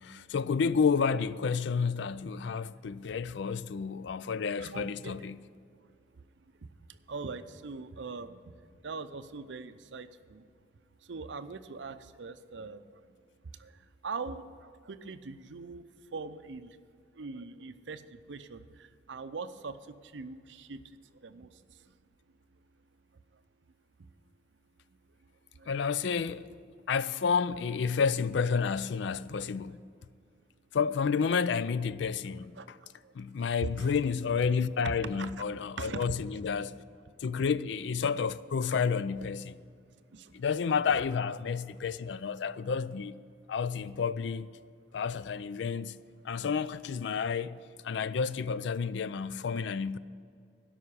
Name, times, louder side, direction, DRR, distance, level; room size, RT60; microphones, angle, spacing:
voice 1, 0.0-5.4 25.7-26.5 26.9-29.8 30.7-32.6 33.1-36.8 37.2-39.5 40.3-43.2 43.5-44.5 44.9-46.0 46.2-47.6 47.8-50.0, left 6 dB, 75° left, 0.4 m, -30 dB
voice 2, 4.6-5.2 7.1-8.4 8.8-10.4 11.1-12.8 14.0-14.4 14.9-15.8 16.1-16.7 17.2-18.0 18.3-18.6 19.1-19.7 20.1-20.8 21.2-21.5 32.6-32.7 33.6-33.9 34.8-35.3 35.8-36.1 40.1-40.3, right 4 dB, 75° right, 0.6 m, -40 dB
12.5 x 5.6 x 8.5 m
head